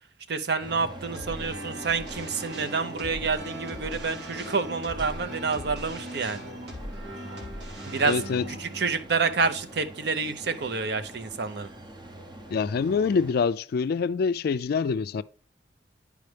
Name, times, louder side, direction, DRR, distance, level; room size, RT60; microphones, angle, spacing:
voice 1, 0.3-6.5 7.8-8.2 8.5-11.7, right 4 dB, 65° right, 0.7 m, -28 dB
sound 1, 0.6-13.3, right 1 dB, 25° right, 0.7 m, -44 dB
sound 2, 1.1-10.3, equal, 90° right, 2.0 m, -40 dB
voice 2, 8.0-8.4 12.5-15.2, left 5 dB, 60° left, 0.3 m, -25 dB
10.5 x 4.9 x 3.3 m
head